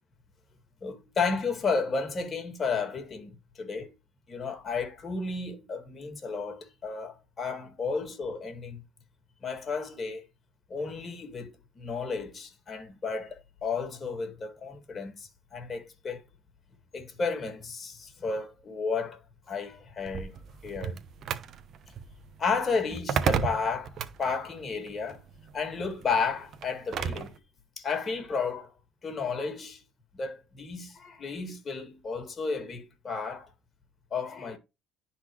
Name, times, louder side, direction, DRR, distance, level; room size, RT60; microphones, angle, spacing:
voice 1, 0.8-3.9 4.3-8.8 9.4-10.2 10.7-16.2 16.9-19.2 19.5-20.4 20.6-21.0 22.4-25.2 25.5-27.3 27.8-28.7 29.0-29.8 30.1-33.5 34.1-34.6, left 4 dB, 35° left, 2.0 m, -32 dB
sound 1, 20.0-27.4, right 7 dB, 55° right, 0.9 m, -34 dB
11.0 x 4.1 x 3.1 m
supercardioid pair, 85°, 0 cm